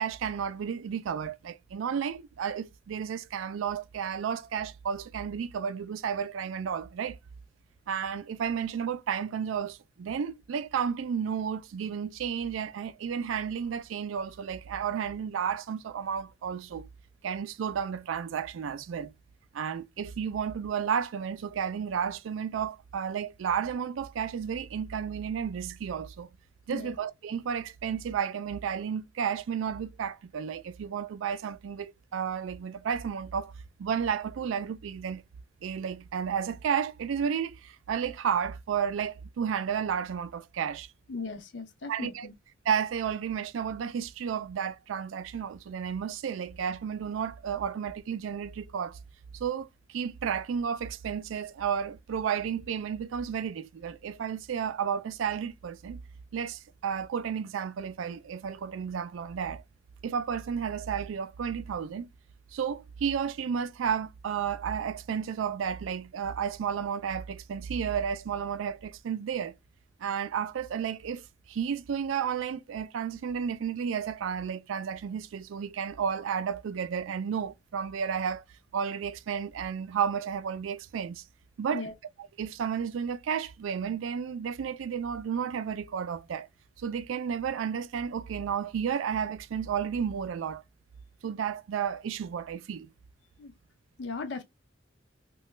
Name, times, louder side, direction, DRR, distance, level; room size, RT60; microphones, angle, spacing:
voice 1, 0.0-7.2 7.9-16.9 17.2-19.1 19.5-26.3 26.7-33.5 33.8-35.2 35.6-40.9 41.9-42.3 42.7-49.0 49.3-56.0 56.3-59.6 60.0-62.1 62.5-69.5 70.0-78.4 78.7-81.2 81.6-81.8 82.4-86.5 86.8-90.6 91.2-92.9, right 7 dB, 90° right, 0.3 m, -32 dB
voice 2, 41.1-42.3 81.7-81.9 93.4-93.5 94.0-94.4, left 4 dB, 65° left, 0.5 m, -37 dB
2.9 x 2.2 x 3.1 m
head